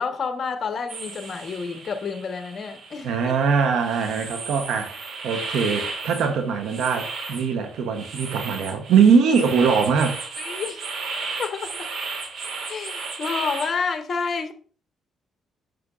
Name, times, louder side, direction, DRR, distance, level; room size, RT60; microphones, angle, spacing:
voice 1, 0.0-3.4 10.4-10.8 11.4-11.9 12.7-14.5, left 5 dB, 45° left, 1.2 m, -29 dB
sound 1, 0.9-13.7, right 4 dB, 65° right, 2.0 m, -34 dB
voice 2, 3.0-4.9 5.2-10.2, right 6 dB, 80° right, 0.9 m, -21 dB
8.6 x 6.3 x 2.5 m
cardioid pair, 90°, 0 cm